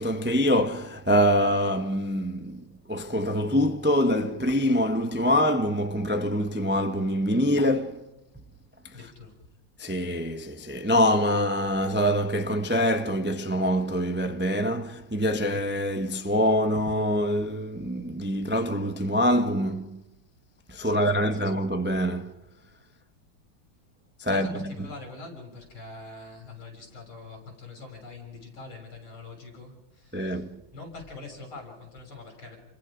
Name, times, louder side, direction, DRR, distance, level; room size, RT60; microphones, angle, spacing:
voice 1, 0.0-2.6 2.9-8.0 9.8-20.0 20.7-22.3 24.2-24.7 30.1-30.6, equal, 10° right, 0.7 m, -25 dB
voice 2, 8.9-9.4 20.8-21.5 24.3-32.6, left 3 dB, 70° left, 7.5 m, -44 dB
29.5 x 23.0 x 5.2 m
omnidirectional pair, 2.4 m